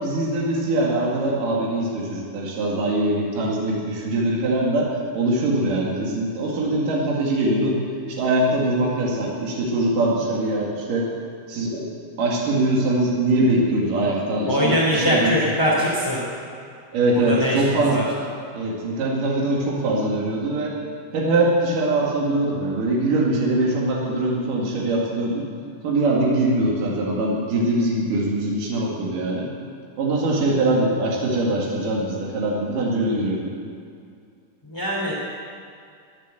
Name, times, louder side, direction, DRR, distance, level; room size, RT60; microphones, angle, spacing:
voice 1, 0.0-7.8 8.1-11.1 11.5-11.8 12.2-15.3 16.9-18.0 18.5-20.7 21.1-25.5 25.8-29.5 30.0-33.5, right 2 dB, 85° right, -3 dB, 3.7 m, -22 dB
voice 2, 14.5-16.2 17.1-18.0 34.6-35.1, equal, 10° left, -7 dB, 2.3 m, -22 dB
21.5 x 7.3 x 8.0 m, 2.3 s
omnidirectional pair, 3.7 m